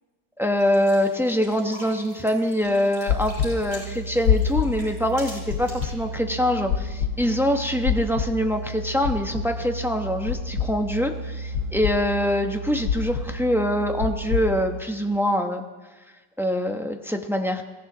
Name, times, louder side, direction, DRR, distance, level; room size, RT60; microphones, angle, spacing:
voice 1, 0.4-15.6 16.4-17.6, equal, ahead, 4 dB, 0.5 m, -24 dB
sound 1, 0.6-5.9, right 1 dB, 40° right, 7.5 m, -45 dB
sound 2, 3.1-3.5 4.2-4.7 5.5-5.9 6.7-7.1 7.8-8.3 9.0-9.4 10.3-10.7 11.5-11.9 12.8-13.2 14.0-14.4, left 9 dB, 75° left, 1.7 m, -23 dB
Musical instrument, 3.1-15.1, right 3 dB, 80° right, 1.9 m, -35 dB
22.0 x 16.0 x 4.0 m, 1.2 s
omnidirectional pair, 1.9 m